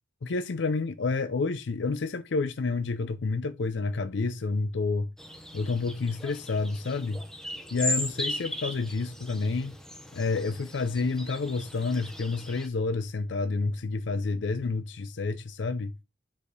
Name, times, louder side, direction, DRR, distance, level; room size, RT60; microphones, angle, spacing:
voice 1, 0.2-5.1 5.5-7.2 7.7-9.7 10.1-15.9, left 3 dB, 70° left, 0.5 m, -29 dB
sound 1, 5.2-12.7, left 1 dB, 5° left, 0.7 m, -37 dB
4.9 x 4.8 x 5.1 m
head